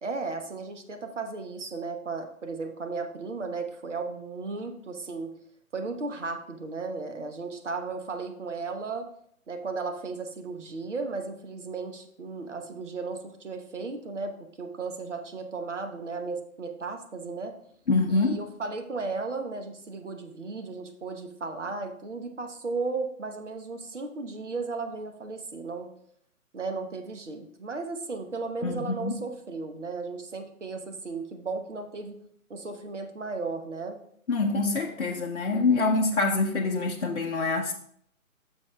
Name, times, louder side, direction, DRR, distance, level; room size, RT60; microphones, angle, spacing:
voice 1, 0.0-5.3 5.7-9.1 9.5-17.5 18.1-25.9 26.5-32.2 32.5-34.0, right 4 dB, 55° right, 5 dB, 1.1 m, -35 dB
voice 2, 17.9-18.4 28.6-29.1 34.3-37.7, left 3 dB, 55° left, 0 dB, 0.7 m, -25 dB
11.0 x 6.3 x 2.3 m, 0.66 s
figure-of-eight pair, 145°, 43 cm